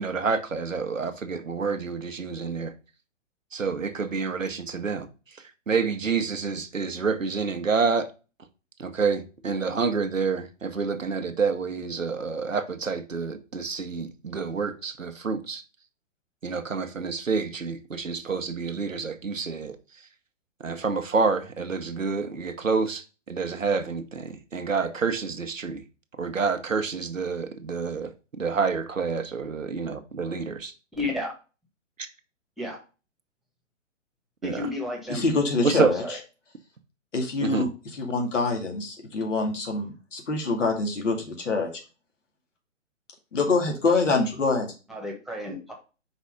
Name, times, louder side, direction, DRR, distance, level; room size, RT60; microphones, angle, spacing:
voice 1, 0.0-2.7 3.5-8.1 8.8-15.6 16.4-20.1 20.6-25.8 26.2-30.7 32.0-32.1 34.4-34.7 35.6-35.9 37.4-37.7, right 5 dB, 90° right, 1.1 m, -28 dB
voice 2, 31.0-31.3 32.6-32.8 34.4-35.2 35.8-36.2 44.9-45.7, left 2 dB, ahead, 1.4 m, -32 dB
voice 3, 35.1-36.0 37.1-41.7 43.3-44.7, left 3 dB, 70° left, 2.3 m, -25 dB
5.4 x 4.1 x 5.1 m
figure-of-eight pair, 130°, 38 cm